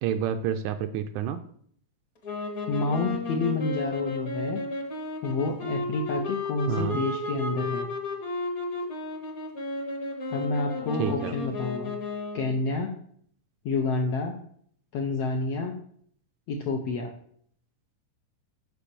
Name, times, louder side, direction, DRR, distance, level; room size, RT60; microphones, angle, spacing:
voice 1, 0.0-1.4 6.7-7.0 11.0-11.4, right 9 dB, 80° right, 9 dB, 1.8 m, -29 dB
sound 1, 2.2-12.6, left 2 dB, 45° left, 1.1 m, -33 dB
voice 2, 2.7-4.6 5.2-7.9 10.3-11.9 12.3-12.9 13.6-14.4 14.9-15.7 16.5-17.1, left 3 dB, 75° left, 2 dB, 1.4 m, -29 dB
5.9 x 5.3 x 6.7 m, 0.63 s
omnidirectional pair, 3.7 m